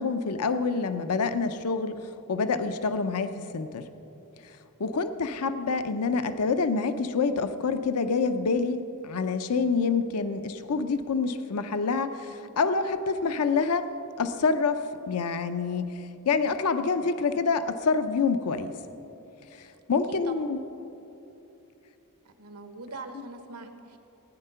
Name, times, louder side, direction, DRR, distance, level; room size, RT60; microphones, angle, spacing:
voice 1, 0.0-1.9 2.3-3.8 4.8-13.9 14.2-15.9 16.3-18.7 19.9-20.6, left 4 dB, 80° left, 10 dB, 0.6 m, -27 dB
voice 2, 22.2-24.0, right 3 dB, 90° right, 6 dB, 1.2 m, -42 dB
16.5 x 9.8 x 5.6 m, 3.0 s
head